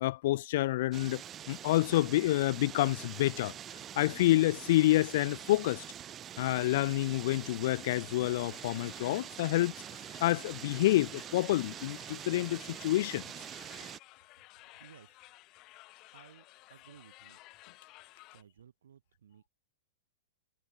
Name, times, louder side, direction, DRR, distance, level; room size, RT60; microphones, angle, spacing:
voice 1, 0.0-1.2 1.5-3.5 3.9-5.8 6.4-9.7 10.2-13.2, left 16 dB, 55° left, 1.0 m, -28 dB
sound 1, 0.9-14.0, right 10 dB, 20° right, 2.1 m, -45 dB
sound 2, 8.5-18.4, left 21 dB, 35° left, 3.3 m, -55 dB
voice 2, 14.8-15.2 16.1-17.4 18.3-19.5, right 9 dB, 85° right, 7.0 m, -58 dB
hypercardioid pair, 145°, 0 cm